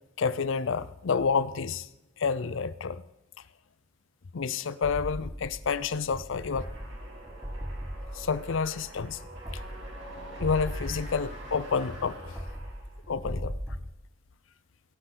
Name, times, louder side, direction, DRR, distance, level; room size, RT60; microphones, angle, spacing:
voice 1, 0.2-1.9 2.2-3.0 4.3-6.7 8.1-9.2 10.4-12.2 13.1-13.5, left 5 dB, 85° left, 17 dB, 0.6 m, -29 dB
sound 1, 4.8-13.8, equal, 5° right, 1.0 m, -39 dB
sound 2, 6.4-13.1, right 1 dB, 65° right, 3.5 m, -46 dB
18.5 x 11.0 x 3.9 m, 0.96 s
head